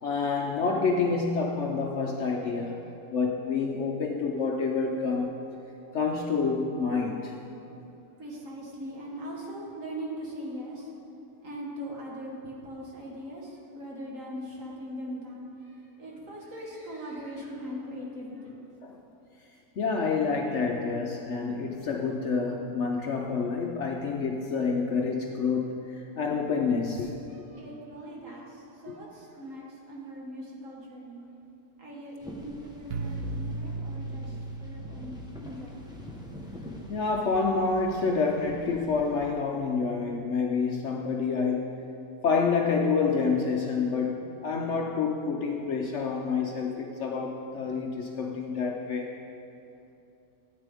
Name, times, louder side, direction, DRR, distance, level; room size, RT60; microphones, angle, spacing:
voice 1, 0.0-2.8 3.1-5.4 5.9-7.3 18.8-19.0 19.8-27.1 32.9-33.2 36.9-41.8 42.2-49.1, left 4 dB, 60° left, 1 dB, 0.9 m, -28 dB
voice 2, 8.2-10.9 11.4-18.5 27.3-31.3 31.8-36.0, equal, 55° right, -3 dB, 2.0 m, -40 dB
sound 1, 32.2-39.3, equal, 5° right, 0.9 m, -46 dB
sound 2, 32.9-38.7, right 2 dB, 85° right, 1.2 m, -39 dB
13.5 x 9.0 x 3.5 m, 2.8 s
omnidirectional pair, 1.7 m